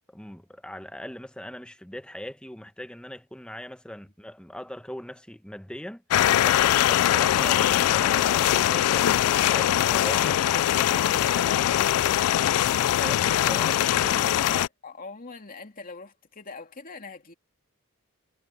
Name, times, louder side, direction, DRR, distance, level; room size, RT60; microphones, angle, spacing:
voice 1, 0.1-14.6, left 1 dB, 5° left, 1.0 m, -40 dB
sound 1, 6.1-14.7, left 12 dB, 85° left, 0.3 m, -22 dB
voice 2, 13.5-17.3, left 3 dB, 40° left, 2.7 m, -43 dB
head